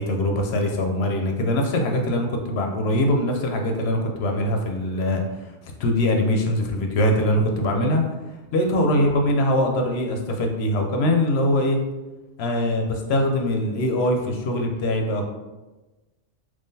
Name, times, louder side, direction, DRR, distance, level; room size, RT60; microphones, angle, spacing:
voice 1, 0.0-5.5 5.8-8.0 8.5-11.8 12.4-15.3, left 1 dB, 70° left, 3 dB, 0.8 m, -22 dB
3.6 x 3.1 x 2.7 m, 1.1 s
omnidirectional pair, 1.2 m